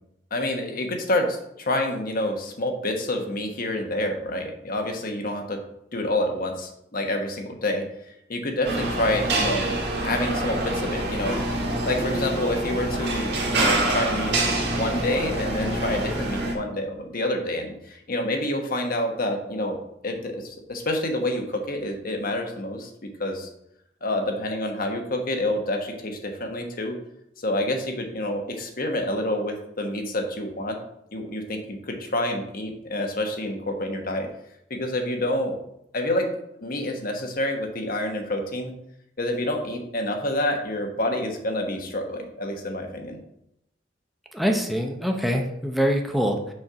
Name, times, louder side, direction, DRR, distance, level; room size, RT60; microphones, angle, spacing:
voice 1, 0.3-5.6 5.9-7.8 8.3-11.4 11.8-14.4 14.7-22.9 23.2-23.5 24.0-26.9 27.4-30.8 31.1-34.3 34.7-35.6 35.9-36.3 36.6-38.7 39.2-43.2, left 1 dB, 50° left, 3 dB, 1.2 m, -28 dB
sound 1, 8.6-16.5, right 1 dB, 65° right, 1.7 m, -26 dB
voice 2, 44.3-46.5, equal, ahead, 2 dB, 0.7 m, -24 dB
6.5 x 4.5 x 5.6 m, 0.76 s
head